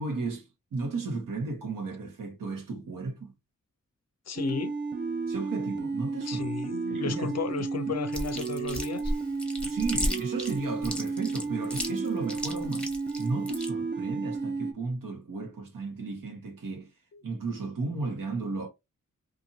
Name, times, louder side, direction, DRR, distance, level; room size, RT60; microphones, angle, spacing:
voice 1, 0.0-3.3 5.3-6.5 6.9-7.3 7.9-8.0 9.6-12.9 13.2-16.9 17.2-18.7, right 3 dB, 85° right, 1.2 m, -34 dB
voice 2, 4.3-4.8 6.3-9.1 17.1-17.2, left 6 dB, 55° left, 0.5 m, -34 dB
sound 1, 4.4-14.7, right 4 dB, 35° right, 0.5 m, -33 dB
Chewing mastication, 8.1-13.7, equal, 5° left, 1.0 m, -33 dB
2.7 x 2.6 x 2.6 m
cardioid pair, 65°, 32 cm